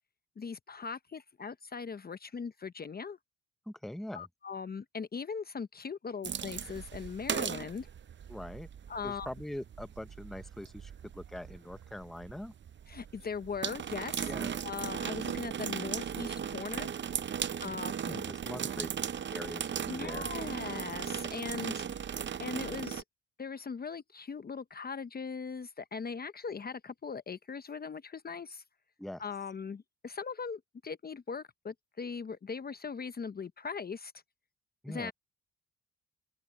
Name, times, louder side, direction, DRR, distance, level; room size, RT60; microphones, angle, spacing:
voice 1, 0.4-3.2 4.1-7.9 8.9-9.3 12.9-14.3 14.6-16.9 17.6-18.2 19.9-21.8 22.4-23.0 23.4-28.6 29.2-34.1 34.9-35.1, left 5 dB, 30° left, 0.8 m, -40 dB
voice 2, 3.7-4.3 8.3-8.7 9.0-12.5 14.3-14.5 17.6-18.9 19.3-20.3 29.0-29.2 34.8-35.1, left 1 dB, ahead, 0.9 m, -43 dB
sound 1, 6.2-23.0, right 8 dB, 40° right, 0.7 m, -37 dB
open air
cardioid pair, 90°, 30 cm